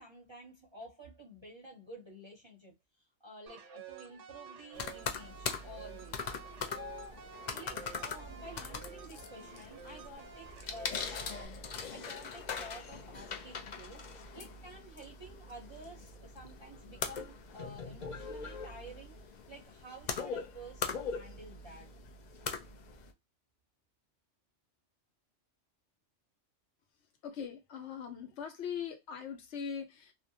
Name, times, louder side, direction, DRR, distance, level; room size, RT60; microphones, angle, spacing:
voice 1, 0.0-6.2 6.6-11.6 11.9-21.9, right 1 dB, 35° right, 0.5 m, -51 dB
sound 1, 3.5-11.5, right 7 dB, 85° right, 0.9 m, -51 dB
sound 2, 4.7-23.1, left 5 dB, 60° left, 0.5 m, -41 dB
voice 2, 27.2-30.1, left 7 dB, 75° left, 1.0 m, -41 dB
2.5 x 2.1 x 2.6 m
omnidirectional pair, 1.2 m